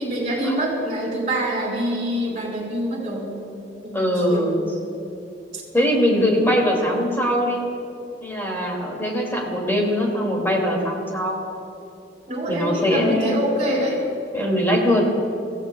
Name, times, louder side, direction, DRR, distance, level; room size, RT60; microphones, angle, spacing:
voice 1, 0.0-3.4 3.8-4.0 4.3-4.7 5.5-5.6 6.3-6.5 12.3-14.0, right 1 dB, 40° right, -3 dB, 4.2 m, -25 dB
voice 2, 3.9-4.5 5.7-7.6 8.2-11.4 12.5-13.5 14.3-15.0, equal, 15° left, -1 dB, 2.5 m, -21 dB
26.5 x 15.5 x 2.3 m, 2.7 s
head